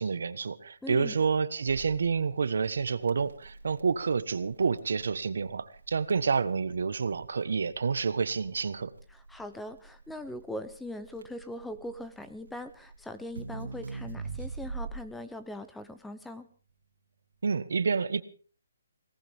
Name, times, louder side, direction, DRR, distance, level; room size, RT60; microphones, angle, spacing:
voice 1, 0.0-8.9 17.4-18.2, right 5 dB, 70° right, 14 dB, 1.3 m, -29 dB
voice 2, 0.8-1.2 9.1-16.5, left 1 dB, 5° left, 10 dB, 0.7 m, -41 dB
Crackle, 1.7-15.2, right 4 dB, 85° right, 2.7 m, -43 dB
21.5 x 18.5 x 3.6 m, 0.40 s
hypercardioid pair, 165°, 0 cm